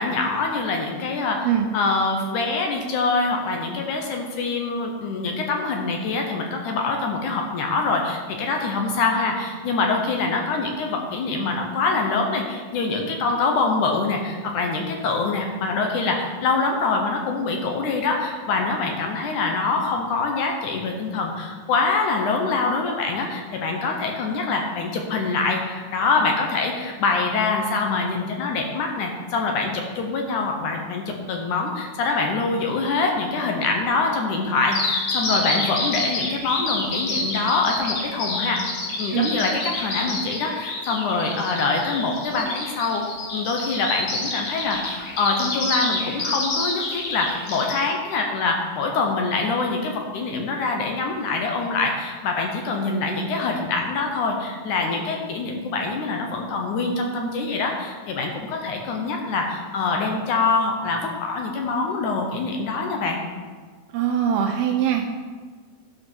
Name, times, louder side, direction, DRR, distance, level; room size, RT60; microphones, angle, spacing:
voice 1, 0.0-1.5 1.7-38.6 39.0-63.2, left 3 dB, 70° left, 2 dB, 2.1 m, -24 dB
Bird vocalization bird call bird song, 34.7-47.7, left 3 dB, 50° left, 2.2 m, -28 dB
voice 2, 63.9-65.1, right 9 dB, 85° right, 2 dB, 2.6 m, -22 dB
13.0 x 5.1 x 6.2 m, 1.5 s
omnidirectional pair, 4.4 m